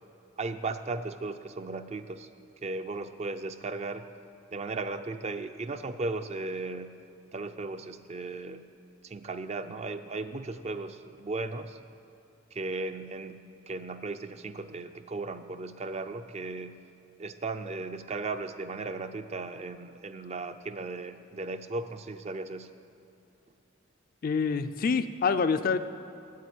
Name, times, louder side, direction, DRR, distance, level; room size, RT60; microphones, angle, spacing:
voice 1, 0.4-2.3 2.6-4.1 4.5-7.0 7.3-8.7 9.0-11.8 12.5-16.8 17.2-22.7, right 3 dB, 35° right, 9 dB, 0.4 m, -36 dB
voice 2, 24.2-25.8, left 5 dB, 45° left, 10 dB, 0.4 m, -26 dB
9.5 x 8.4 x 9.1 m, 2.6 s
head